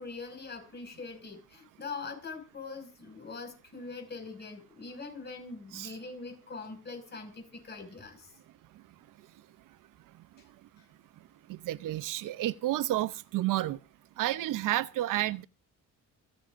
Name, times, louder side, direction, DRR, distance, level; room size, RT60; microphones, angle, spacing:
voice 1, 0.0-8.3 10.8-10.9, left 4 dB, 35° left, 5.8 m, -43 dB
voice 2, 11.5-13.8 14.2-15.4, right 15 dB, 85° right, 0.7 m, -30 dB
26.5 x 8.9 x 2.6 m
cardioid pair, 130°, 31 cm